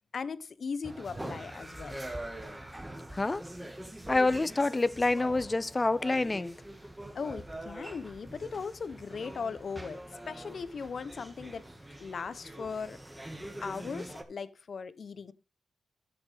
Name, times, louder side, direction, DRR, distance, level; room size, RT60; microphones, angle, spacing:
voice 1, 0.1-2.0 7.1-10.0 10.3-11.7 12.0-13.0 13.2-13.3 13.6-15.3, left 5 dB, 60° left, 0.7 m, -38 dB
sound 1, 0.8-14.2, right 1 dB, 10° right, 1.5 m, -44 dB
voice 2, 3.1-3.4 4.1-6.6, left 2 dB, 25° left, 0.4 m, -27 dB
11.5 x 7.0 x 3.4 m
cardioid pair, 75°, 0 cm